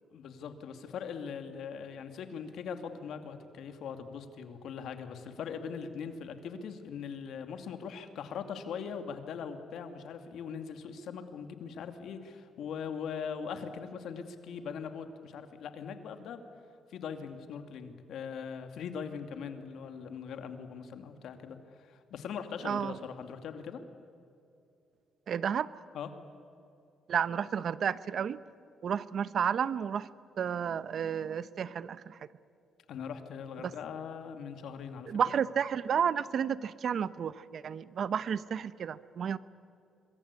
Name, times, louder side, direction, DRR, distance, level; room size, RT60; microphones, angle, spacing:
voice 1, 0.1-16.4 16.9-23.8 25.9-26.1 32.9-35.1, left 6 dB, 75° left, 7 dB, 2.5 m, -41 dB
voice 2, 22.6-23.0 25.3-25.7 27.1-28.4 28.8-30.1 30.4-32.2 33.6-33.7 35.1-39.4, right 8 dB, 60° right, 16 dB, 0.9 m, -31 dB
26.0 x 22.5 x 8.4 m, 2.7 s
cardioid pair, 90°, 0 cm